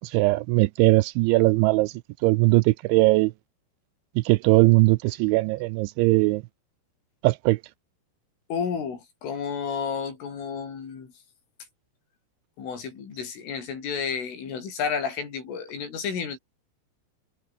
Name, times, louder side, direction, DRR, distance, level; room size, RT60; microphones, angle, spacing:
voice 1, 0.0-1.9 2.2-3.3 4.3-6.4 7.2-7.6, right 21 dB, 85° right, 2.8 m, -20 dB
voice 2, 8.5-11.1 12.6-16.4, left 6 dB, 80° left, 7.9 m, -31 dB
omnidirectional pair, 5.6 m